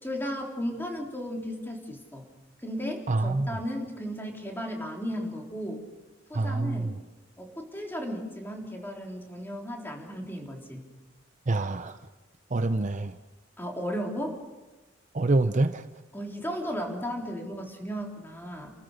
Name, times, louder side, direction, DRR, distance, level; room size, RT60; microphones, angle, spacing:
voice 1, 0.0-2.3 2.6-5.8 6.3-6.9 7.4-10.8 13.6-14.4 16.1-18.7, equal, 10° left, 0 dB, 3.7 m, -35 dB
voice 2, 3.1-3.6 6.3-6.9 11.5-12.0 12.5-13.1 15.1-15.8, right 2 dB, 40° right, 10 dB, 0.7 m, -26 dB
30.0 x 14.0 x 6.6 m, 1.1 s
head